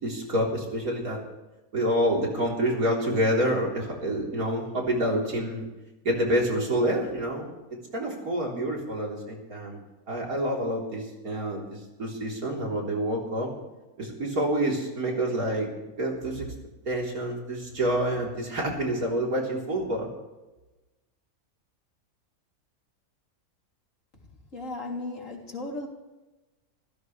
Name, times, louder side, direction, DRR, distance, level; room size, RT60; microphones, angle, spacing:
voice 1, 0.0-1.2 1.7-5.6 6.0-9.8 10.1-13.5 14.0-15.7 16.0-16.5 16.9-20.1, right 1 dB, 75° right, -1 dB, 4.3 m, -28 dB
voice 2, 24.5-25.9, left 2 dB, 60° left, 0 dB, 3.6 m, -35 dB
26.5 x 15.5 x 3.3 m, 1.1 s
omnidirectional pair, 1.6 m